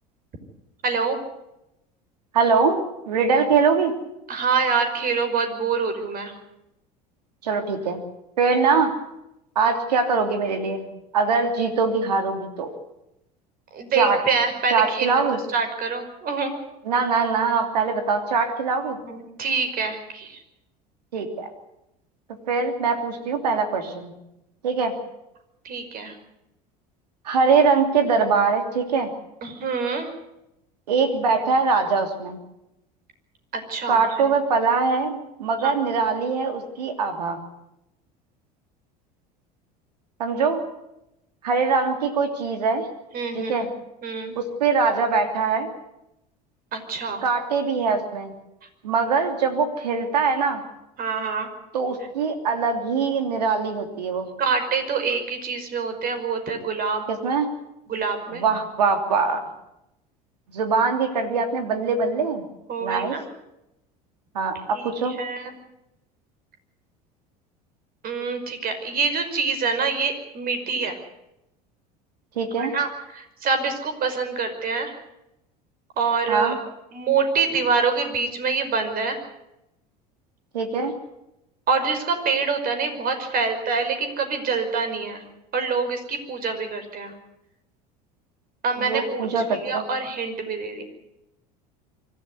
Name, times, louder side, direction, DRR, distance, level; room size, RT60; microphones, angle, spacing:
voice 1, 0.8-1.2 4.3-6.3 13.7-15.2 15.5-16.6 19.0-20.4 25.6-26.2 29.4-30.1 33.5-34.3 35.6-35.7 43.1-43.6 44.0-44.3 46.7-47.2 51.0-51.5 54.4-57.1 57.9-58.4 62.7-63.2 64.7-65.5 68.0-71.0 72.6-74.9 76.0-76.5 76.9-79.2 81.7-85.2 85.5-87.1 88.6-90.8, right 5 dB, 45° right, 7 dB, 5.4 m, -26 dB
voice 2, 2.3-2.8 3.1-3.9 7.4-8.0 8.4-8.9 9.5-10.9 11.1-12.7 13.9-14.2 14.7-15.4 16.9-19.0 21.1-21.5 22.5-24.1 24.6-24.9 27.2-29.1 30.9-32.4 33.9-37.4 40.2-40.6 41.4-42.9 43.3-43.7 44.3-45.7 47.2-48.4 48.8-50.6 51.7-54.3 57.1-57.5 58.3-59.4 60.5-62.4 62.8-63.2 64.3-65.2 72.4-72.7 76.3-76.6 80.5-80.9 88.8-89.8, right 5 dB, 85° right, 7 dB, 3.0 m, -22 dB
25.0 x 13.5 x 9.6 m, 0.88 s
hypercardioid pair, 80°, 20 cm